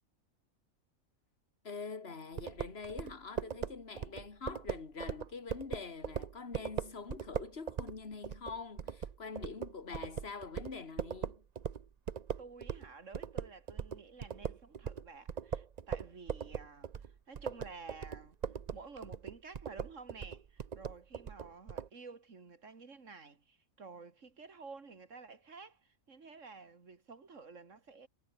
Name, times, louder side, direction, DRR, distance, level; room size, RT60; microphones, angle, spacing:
voice 1, 1.6-11.4, left 4 dB, 45° left, 2.4 m, -45 dB
sound 1, 2.4-12.9 13.1-21.9, right 7 dB, 40° right, 0.6 m, -40 dB
voice 2, 12.4-18.4 18.7-28.1, right 4 dB, 65° right, 2.6 m, -52 dB
omnidirectional pair, 1.4 m